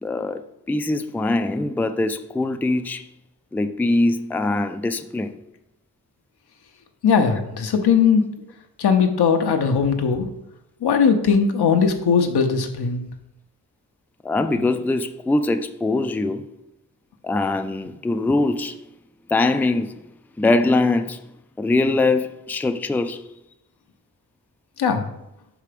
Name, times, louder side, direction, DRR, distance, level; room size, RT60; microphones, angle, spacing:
voice 1, 0.0-3.1 3.5-5.3 14.2-16.4 17.2-18.8 19.3-19.9 20.4-21.2 21.6-23.2, left 2 dB, 5° left, 0.4 m, -22 dB
voice 2, 7.0-8.2 8.8-10.3 10.8-13.0 24.8-25.0, left 6 dB, 85° left, 0.9 m, -19 dB
5.7 x 4.9 x 5.1 m
cardioid pair, 60°, 38 cm